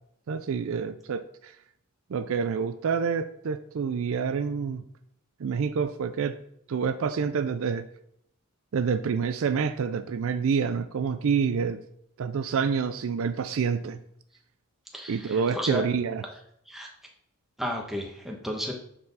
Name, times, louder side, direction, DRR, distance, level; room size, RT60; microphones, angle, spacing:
voice 1, 0.3-1.6 2.1-4.8 5.4-6.4 6.7-7.8 8.7-11.8 12.2-14.0 15.1-16.2, right 6 dB, 65° right, 11 dB, 0.4 m, -27 dB
voice 2, 14.9-15.8 16.7-16.9 17.6-18.7, equal, ahead, 0 dB, 1.1 m, -33 dB
7.5 x 4.3 x 4.0 m, 0.70 s
head